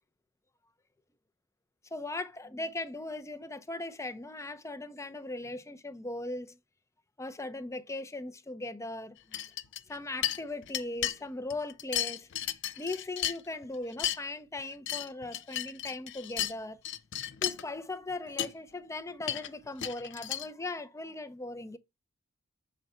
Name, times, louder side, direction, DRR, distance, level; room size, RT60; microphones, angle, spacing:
voice 1, 1.9-6.6 7.2-9.4 9.9-16.8 17.4-21.8, left 2 dB, 15° left, 0.6 m, -39 dB
sound 1, 9.3-10.0 10.2-11.2 11.5-13.6 13.9-14.2 14.6-16.5 16.8-17.6 18.1-18.2 18.4-18.5 19.2-20.5, left 11 dB, 60° left, 0.6 m, -34 dB
7.6 x 5.1 x 4.3 m
head